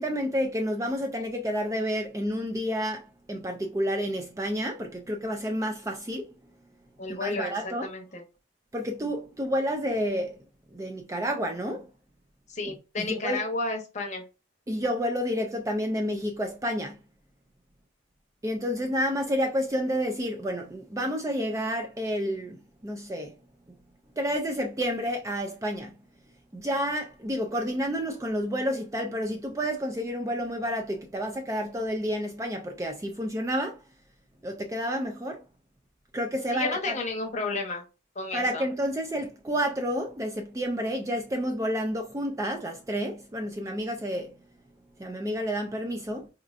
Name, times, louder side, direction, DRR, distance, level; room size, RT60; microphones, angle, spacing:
voice 1, 0.0-6.3 7.1-7.9 8.7-10.4 10.7-11.9 13.0-13.4 14.7-17.0 18.4-23.3 24.2-25.9 26.5-33.8 34.4-35.4 36.1-37.0 38.3-44.3 45.0-46.3, equal, 15° right, 0.3 m, -30 dB
voice 2, 7.0-8.2 12.5-14.2 36.5-37.8 38.2-38.6, left 3 dB, 35° left, 0.8 m, -32 dB
4.2 x 2.5 x 2.4 m
head